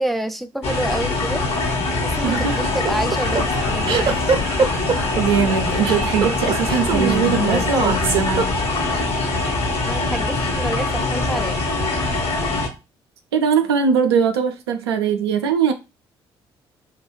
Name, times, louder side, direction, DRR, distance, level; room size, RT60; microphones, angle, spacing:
voice 1, 0.0-1.5 2.0-4.2 9.8-11.6, right 1 dB, ahead, 0.4 m, -28 dB
sound 1, 0.6-12.7, left 2 dB, 50° left, 1.0 m, -23 dB
sound 2, 2.1-7.5, left 4 dB, 75° left, 0.7 m, -36 dB
voice 2, 2.2-2.6 5.2-8.5 13.3-15.7, right 6 dB, 75° right, 0.4 m, -21 dB
sound 3, 2.6-8.9, right 5 dB, 40° right, 0.7 m, -21 dB
2.8 x 2.2 x 3.0 m
figure-of-eight pair, 45°, 13 cm